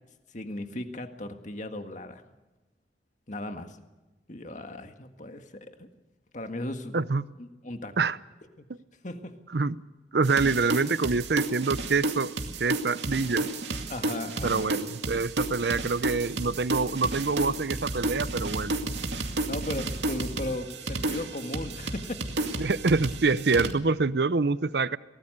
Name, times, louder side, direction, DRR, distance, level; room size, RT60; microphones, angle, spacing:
voice 1, 0.3-2.2 3.3-3.8 4.3-5.9 6.3-7.1 7.4-8.1 8.6-8.7 9.0-9.4 13.9-14.7 19.2-22.2 22.5-22.6, left 1 dB, 45° left, 6 dB, 1.8 m, -37 dB
voice 2, 6.9-7.2 8.0-8.2 9.5-9.7 10.1-12.3 12.6-13.5 14.4-18.7 22.6-25.0, right 4 dB, 65° right, 16 dB, 0.7 m, -26 dB
sound 1, 10.2-23.7, right 2 dB, 80° right, 2.4 m, -32 dB
23.0 x 18.0 x 6.7 m, 1.1 s
head